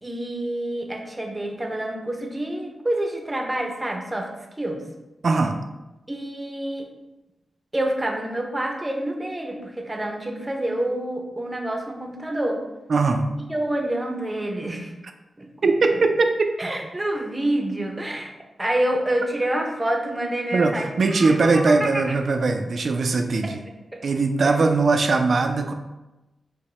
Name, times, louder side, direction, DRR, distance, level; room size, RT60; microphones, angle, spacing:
voice 1, 0.0-4.3 4.6-4.9 6.1-6.9 7.7-12.6 13.5-14.9 15.4-16.0 16.6-18.3 18.6-22.1 23.4-24.0 24.4-24.6, right 1 dB, 20° right, 3 dB, 0.6 m, -28 dB
voice 2, 5.2-5.6 12.9-13.3 15.6-16.3 20.5-23.6 24.0-25.7, right 3 dB, 60° right, 5 dB, 0.4 m, -20 dB
4.5 x 2.1 x 3.1 m, 1.0 s
cardioid pair, 65°, 0 cm